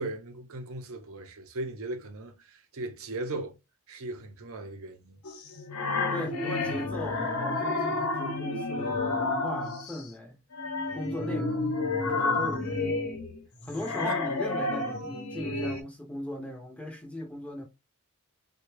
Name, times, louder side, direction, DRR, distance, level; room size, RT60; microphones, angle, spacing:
voice 1, 0.0-3.6 3.9-5.2 14.0-14.2, right 2 dB, 70° right, 0.7 m, -38 dB
sound 1, 5.2-10.0 10.5-15.8, left 3 dB, 80° left, 0.8 m, -30 dB
voice 2, 6.1-10.4 10.9-13.0 13.6-17.6, left 1 dB, 5° left, 0.6 m, -38 dB
3.4 x 2.2 x 3.2 m
head